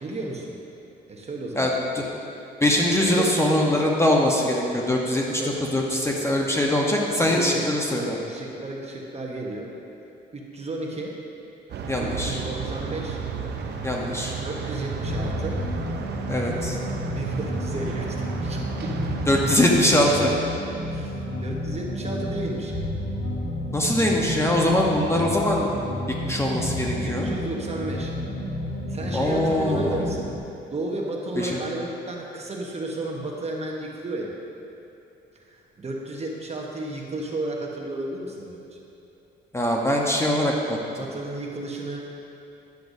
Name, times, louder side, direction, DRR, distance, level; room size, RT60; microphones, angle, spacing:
voice 1, 0.0-0.6 1.1-1.8 3.0-3.4 5.4-5.6 7.3-9.7 10.3-11.2 12.0-13.2 14.4-15.6 16.5-16.6 17.1-19.1 20.8-22.9 27.0-28.1 28.9-30.3 30.7-34.3 35.3-38.8 41.0-42.0, right 2 dB, 35° right, -1 dB, 1.1 m, -33 dB
voice 2, 1.6-2.0 2.6-8.1 11.9-12.4 13.8-14.3 16.3-16.7 19.3-20.3 23.7-25.7 26.2-27.3 29.1-30.0 31.4-31.7 39.5-40.8, left 1 dB, 15° left, -2 dB, 0.9 m, -22 dB
sound 1, 11.7-19.7, right 5 dB, 60° right, 0.7 m, -33 dB
sound 2, 15.0-30.4, left 1 dB, 80° left, 1.5 m, -31 dB
10.5 x 7.7 x 2.7 m, 2.8 s
cardioid pair, 95°, 19 cm